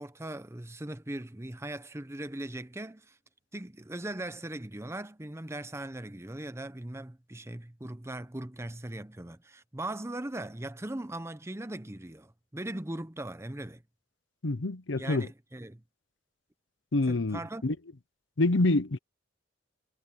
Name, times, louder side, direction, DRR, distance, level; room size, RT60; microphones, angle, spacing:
voice 1, 0.0-3.2 3.5-13.8 15.0-15.8 17.1-17.6, right 1 dB, 15° right, 0.8 m, -39 dB
voice 2, 14.4-15.3 16.9-17.8 18.4-19.0, left 2 dB, 75° left, 0.9 m, -27 dB
head